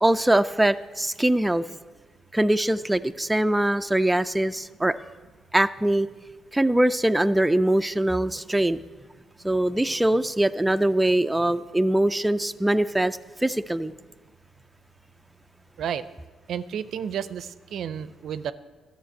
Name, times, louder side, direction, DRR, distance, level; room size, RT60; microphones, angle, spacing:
voice 1, 0.0-1.6 2.3-5.1 5.5-6.1 6.5-8.8 9.4-13.9, right 1 dB, 10° right, 10 dB, 0.4 m, -22 dB
voice 2, 16.5-18.5, right 8 dB, 70° right, 14 dB, 0.5 m, -31 dB
12.0 x 6.5 x 9.1 m, 1.3 s
cardioid pair, 90°, 0 cm